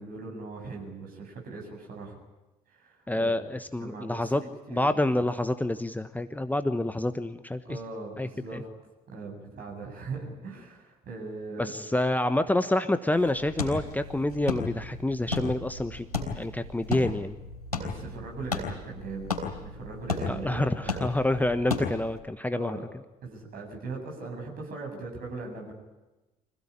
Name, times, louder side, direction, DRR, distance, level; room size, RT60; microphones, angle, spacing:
voice 1, 0.0-2.2 2.8-3.3 3.8-4.3 4.7-4.8 7.6-8.6 9.1-11.7 17.7-19.3 19.6-20.9 22.5-22.8 23.2-25.7, right 3 dB, 50° right, 1 dB, 7.9 m, -39 dB
voice 2, 3.1-4.4 4.7-7.8 8.2-8.6 11.6-17.4 20.3-22.9, left 1 dB, 10° left, 10 dB, 1.2 m, -28 dB
sound 1, 13.2-22.2, left 4 dB, 90° left, 4.1 m, -35 dB
26.0 x 16.5 x 9.9 m, 1.1 s
figure-of-eight pair, 50°, 19 cm